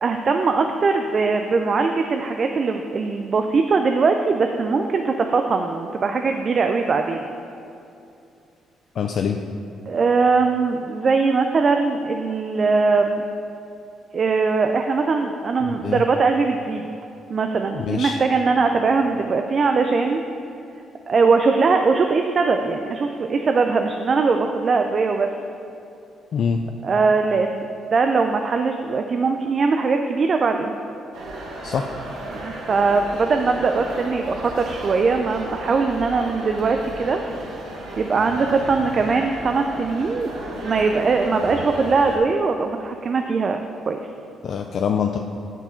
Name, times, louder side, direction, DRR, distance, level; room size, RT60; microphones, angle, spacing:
voice 1, 0.0-7.3 9.9-13.2 14.1-16.9 17.3-20.2 21.1-25.3 26.8-27.7 27.9-30.8 32.3-37.2 38.0-40.3 40.6-44.0, right 4 dB, 45° right, 5 dB, 0.4 m, -21 dB
voice 2, 9.0-9.4 15.8-16.0 17.7-18.2 26.3-26.6 31.6-31.9 44.4-45.2, left 7 dB, 60° left, 4 dB, 0.4 m, -24 dB
sound 1, 31.1-42.2, right 1 dB, 80° right, 1.4 m, -34 dB
9.7 x 4.6 x 4.4 m, 2.7 s
cardioid pair, 90°, 0 cm